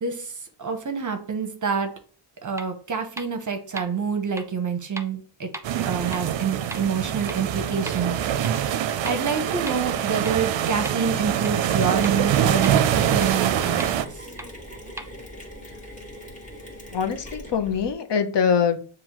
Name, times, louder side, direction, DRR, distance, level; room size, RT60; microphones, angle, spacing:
voice 1, 0.0-1.9 2.4-5.5 5.8-8.3 8.8-14.3, right 6 dB, 40° right, 6 dB, 0.8 m, -27 dB
sound 1, 2.6-2.7 3.2-3.3 3.8-3.9 4.4-4.5 5.0-5.1 5.5-5.6 6.1-6.2 6.7-6.8 7.3-7.4 7.9-8.0 8.4-8.5 9.1-9.2 9.7-9.8 10.3-10.4 10.8-10.9 11.4-11.5 12.0-12.1 12.6-12.7 13.2-13.3 13.8-13.9 14.4-14.5 15.0-15.1, right 1 dB, 5° right, 0.4 m, -35 dB
sound 2, 5.6-14.0, right 10 dB, 70° right, 0.5 m, -24 dB
Mechanisms, 11.7-17.9, equal, 15° left, 1.4 m, -41 dB
voice 2, 16.9-18.8, left 6 dB, 60° left, 7 dB, 0.8 m, -23 dB
7.1 x 2.5 x 2.9 m, 0.42 s
cardioid pair, 85°, 48 cm